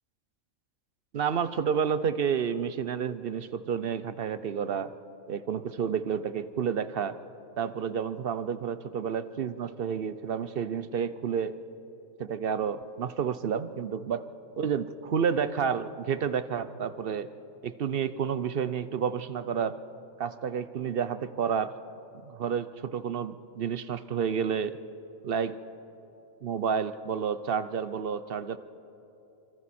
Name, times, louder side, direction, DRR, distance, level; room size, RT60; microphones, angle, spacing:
voice 1, 1.1-4.9 5.3-7.2 7.6-11.6 12.2-14.2 14.6-17.3 17.6-19.8 20.2-21.7 22.3-24.8 25.2-25.6 26.4-28.6, right 7 dB, 55° right, 13 dB, 0.7 m, -30 dB
26.0 x 25.0 x 4.3 m, 2.9 s
omnidirectional pair, 1.4 m